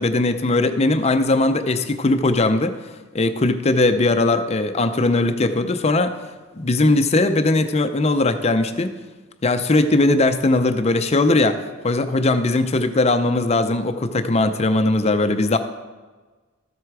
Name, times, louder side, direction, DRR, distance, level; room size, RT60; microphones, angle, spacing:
voice 1, 0.0-2.8 3.1-6.2 6.6-9.0 9.4-15.6, left 2 dB, 30° left, 9 dB, 0.5 m, -19 dB
13.0 x 7.9 x 4.8 m, 1.3 s
head